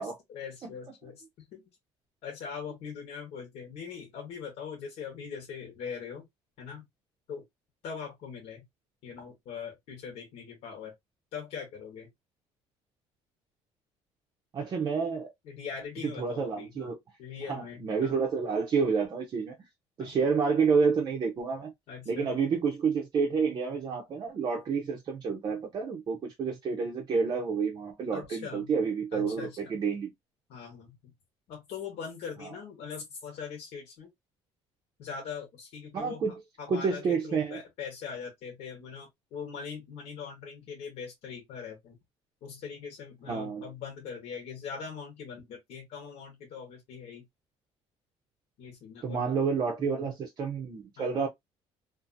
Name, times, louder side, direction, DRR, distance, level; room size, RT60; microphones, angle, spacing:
voice 1, 0.0-1.6 2.2-6.3 6.6-6.9 7.3-7.4 7.8-8.6 9.0-10.9 11.3-12.1 15.4-16.9 17.2-18.2 20.0-20.2 21.9-22.3 28.1-28.7 29.1-29.9 30.5-31.0 31.5-34.1 35.0-42.0 42.4-47.2 48.6-49.3 49.8-50.1 51.0-51.3, left 6 dB, 70° left, 1.1 m, -41 dB
voice 2, 14.5-15.3 16.2-17.0 17.5-19.6 20.0-21.7 22.1-30.1 35.9-36.3 36.7-37.6 43.3-43.6 49.0-51.3, right 5 dB, 40° right, 0.5 m, -29 dB
2.6 x 2.5 x 2.5 m
cardioid pair, 140°, 11 cm